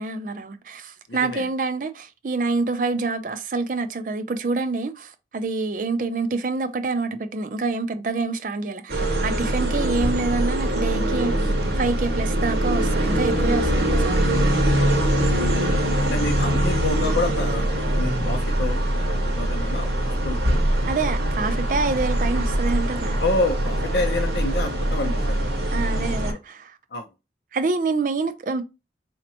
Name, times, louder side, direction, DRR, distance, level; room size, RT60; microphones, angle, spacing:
voice 1, 0.0-14.3 20.8-23.2 25.7-26.8 27.5-28.6, right 3 dB, 45° right, 0.4 m, -27 dB
voice 2, 1.1-1.4 14.8-15.4 16.0-20.5 23.2-25.5 26.9-27.0, left 2 dB, 70° left, 0.5 m, -28 dB
sound 1, 8.9-26.3, right 1 dB, 70° right, 1.2 m, -23 dB
4.3 x 2.8 x 2.7 m
head